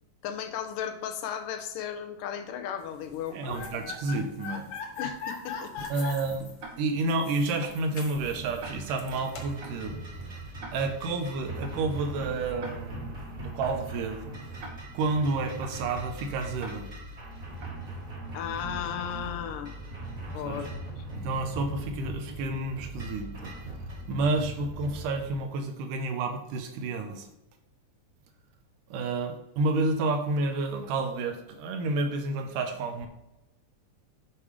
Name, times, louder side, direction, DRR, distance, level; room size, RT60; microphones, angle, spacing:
voice 1, 0.2-3.4 5.0-5.7 18.3-19.7 20.3-20.7 21.0-21.1, left 9 dB, 90° left, 7 dB, 2.4 m, -35 dB
sound 1, 3.1-9.6, left 5 dB, 65° left, 2.0 m, -40 dB
voice 2, 3.3-4.7 5.9-6.5 6.8-10.0 10.7-14.2 14.9-16.9 20.4-20.6 21.1-23.5 24.1-27.3 28.9-33.1, right 3 dB, 85° right, 6 dB, 2.4 m, -30 dB
Tick-tock, 6.6-6.7 7.6-7.7 8.6-8.7 9.6-9.7 10.6-10.7 11.6-11.7 12.6-12.7 13.6-13.7 14.6-14.7 15.6-15.7 16.6-16.7 17.6-17.7, right 3 dB, 55° right, 1.4 m, -42 dB
sound 2, 8.1-25.3, right 1 dB, 30° right, 1.3 m, -40 dB
7.5 x 4.9 x 4.9 m, 0.94 s
omnidirectional pair, 3.7 m